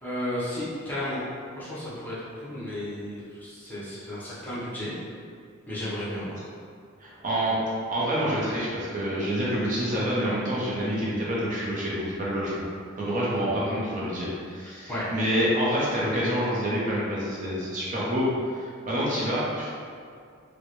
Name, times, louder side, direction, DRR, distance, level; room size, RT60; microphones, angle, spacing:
voice 1, 0.0-1.2 1.6-4.9 5.7-6.4 14.9-15.1, left 1 dB, 10° left, -10 dB, 0.9 m, -33 dB
voice 2, 7.0-7.6 7.9-12.6 13.0-19.7, equal, 40° right, -7 dB, 0.7 m, -27 dB
4.5 x 2.1 x 3.0 m, 2.3 s
head